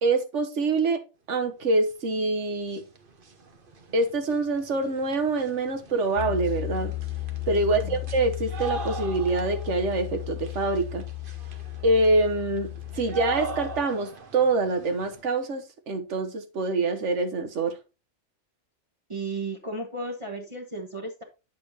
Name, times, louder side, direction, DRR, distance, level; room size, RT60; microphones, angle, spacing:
voice 1, 0.0-1.0 1.3-2.8 3.9-6.9 7.5-11.1 11.8-17.8, right 2 dB, 80° right, 1.4 m, -25 dB
sound 1, 2.2-2.3 2.5-15.2, right 4 dB, 50° right, 1.2 m, -42 dB
Piano, 6.2-13.8, left 17 dB, 70° left, 1.1 m, -35 dB
voice 2, 7.6-8.0 19.1-21.2, right 2 dB, 25° right, 1.4 m, -34 dB
9.1 x 6.6 x 2.9 m
omnidirectional pair, 1.2 m